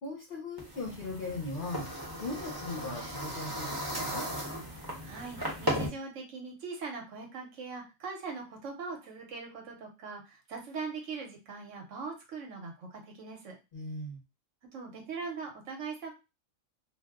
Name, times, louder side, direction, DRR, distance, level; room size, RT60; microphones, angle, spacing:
voice 1, 0.0-1.9 2.2-4.3 13.7-14.2, left 2 dB, 45° left, -2 dB, 0.9 m, -39 dB
sound 1, 0.6-5.9, equal, 20° right, 0.7 m, -36 dB
voice 2, 5.0-13.6 14.7-16.1, right 4 dB, 70° right, 1 dB, 1.1 m, -41 dB
2.6 x 2.1 x 3.5 m, 0.27 s
omnidirectional pair, 1.4 m